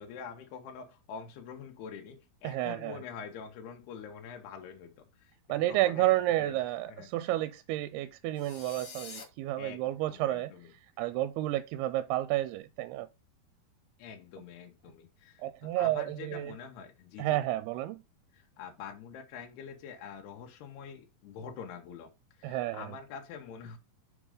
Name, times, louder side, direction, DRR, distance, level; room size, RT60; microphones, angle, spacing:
voice 1, 0.0-5.3 5.7-6.6 6.9-7.1 9.6-10.7 14.0-17.4 18.3-22.1 22.4-23.8, left 6 dB, 85° left, 3.4 m, -46 dB
voice 2, 2.4-3.0 5.5-10.5 11.0-13.1 15.4-16.5 17.2-18.0 22.4-23.0, right 15 dB, 90° right, 2.6 m, -31 dB
sound 1, 8.4-9.2, left 5 dB, 45° left, 2.3 m, -46 dB
7.1 x 5.1 x 5.0 m
omnidirectional pair, 4.5 m